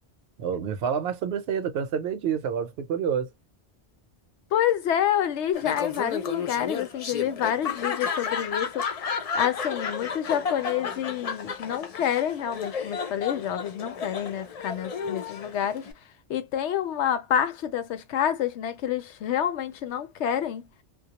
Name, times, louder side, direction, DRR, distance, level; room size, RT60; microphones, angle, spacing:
voice 1, 0.4-3.3, right 7 dB, 65° right, 0.8 m, -28 dB
voice 2, 4.5-9.1 9.3-15.9 16.3-20.8, left 10 dB, 85° left, 0.9 m, -28 dB
Laughter, 5.5-15.9, left 6 dB, 50° left, 0.4 m, -32 dB
2.3 x 2.1 x 2.8 m
omnidirectional pair, 1.2 m